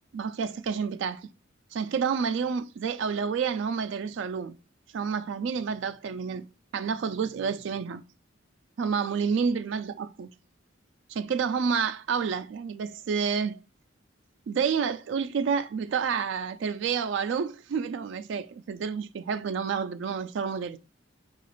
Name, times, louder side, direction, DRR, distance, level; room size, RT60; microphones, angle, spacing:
voice 1, 0.1-1.3 1.7-4.6 4.9-6.5 6.7-8.0 8.8-10.3 11.1-13.6 14.5-20.8, right 6 dB, 65° right, 0.3 m, -29 dB
4.8 x 2.4 x 3.0 m
head